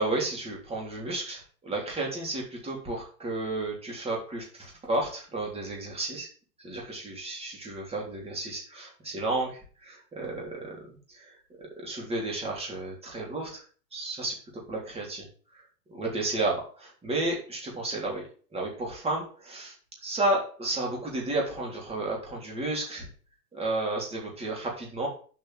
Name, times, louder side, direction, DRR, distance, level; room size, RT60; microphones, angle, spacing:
voice 1, 0.0-6.3 6.6-10.8 11.1-13.6 13.9-14.3 14.7-15.3 15.9-18.2 18.5-19.7 20.0-23.1 23.5-25.1, right 2 dB, 10° right, -2 dB, 3.5 m, -32 dB
7.3 x 5.4 x 7.5 m, 0.41 s
hypercardioid pair, 145°, 50 cm